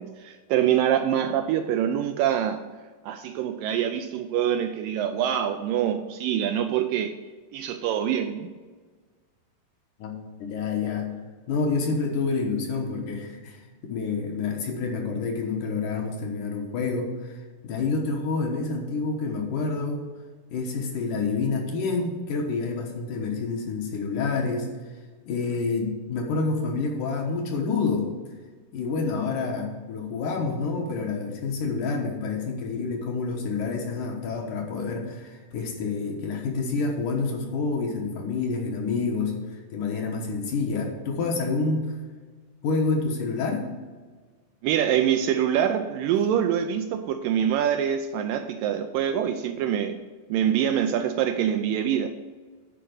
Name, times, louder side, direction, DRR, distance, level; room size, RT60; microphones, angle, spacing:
voice 1, 0.0-2.6 3.0-7.2 7.5-8.5 44.6-50.0 50.3-52.1, right 9 dB, 80° right, 7 dB, 2.1 m, -25 dB
voice 2, 10.4-11.1 11.5-17.3 17.6-20.0 20.5-24.7 25.3-28.1 28.7-42.0 42.6-43.7, left 4 dB, 65° left, 1 dB, 2.4 m, -28 dB
10.5 x 4.9 x 6.4 m, 1.4 s
omnidirectional pair, 4.3 m